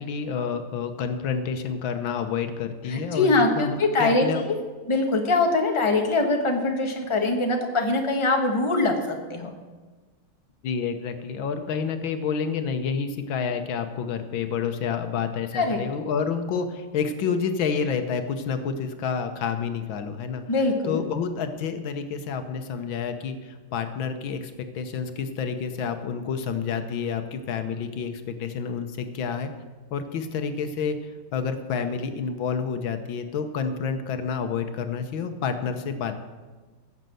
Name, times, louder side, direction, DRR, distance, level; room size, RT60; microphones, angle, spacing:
voice 1, 0.0-4.4 10.6-20.4 20.8-29.5 29.9-36.2, left 6 dB, 80° left, 8 dB, 1.7 m, -29 dB
voice 2, 2.9-4.6 4.9-9.5 15.5-15.8 20.5-21.0, left 2 dB, 15° left, 2 dB, 1.3 m, -23 dB
15.0 x 6.7 x 7.7 m, 1.3 s
omnidirectional pair, 2.1 m